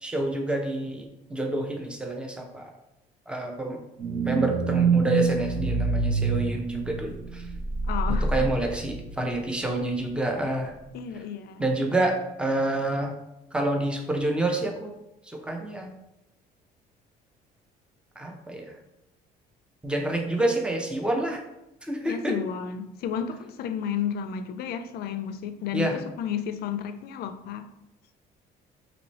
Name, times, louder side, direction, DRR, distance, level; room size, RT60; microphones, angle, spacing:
voice 1, 0.0-2.7 3.3-3.8 4.2-7.5 8.2-10.7 11.6-13.1 13.5-14.9 15.3-15.9 18.2-18.7 19.8-21.4 21.8-22.4 25.7-26.0, right 1 dB, 5° right, 0.6 m, -28 dB
sound 1, 4.0-9.7 10.0-10.1, right 4 dB, 70° right, 1.1 m, -27 dB
voice 2, 7.9-8.5 10.9-11.7 22.0-27.7, left 8 dB, 70° left, 0.4 m, -32 dB
3.0 x 3.0 x 4.1 m
cardioid pair, 110°, 17 cm